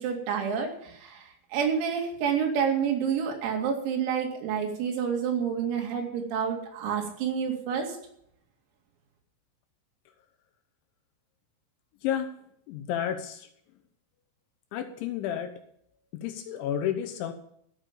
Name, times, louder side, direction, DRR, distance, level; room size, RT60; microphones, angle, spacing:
voice 1, 0.0-8.0, right 7 dB, 90° right, 2 dB, 5.2 m, -29 dB
voice 2, 12.7-13.5 14.7-15.5 16.1-17.3, left 10 dB, 75° left, 8 dB, 2.9 m, -31 dB
15.0 x 7.3 x 7.0 m, 0.70 s
omnidirectional pair, 6.0 m